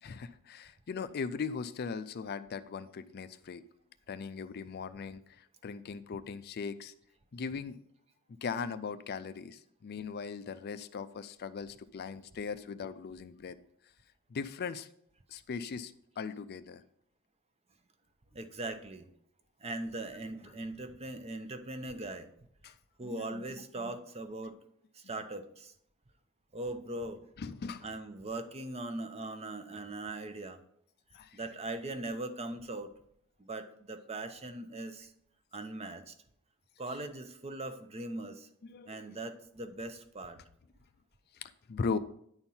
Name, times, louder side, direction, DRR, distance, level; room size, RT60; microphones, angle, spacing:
voice 1, 0.0-3.6 4.1-6.9 7.3-7.8 8.4-13.6 14.3-14.9 15.3-16.8 22.6-22.8 23.0-23.4 23.8-23.9 27.4-27.9 31.1-31.4 38.6-39.2 41.3-42.0, left 5 dB, 45° left, 13 dB, 0.4 m, -39 dB
voice 2, 18.3-19.1 19.6-22.3 23.0-24.5 24.9-25.7 26.5-27.2 27.8-30.6 31.3-32.9 33.4-35.1 35.5-36.1 36.8-38.5 38.9-40.4, right 2 dB, 30° right, 9 dB, 0.7 m, -40 dB
9.6 x 4.4 x 5.5 m, 0.69 s
head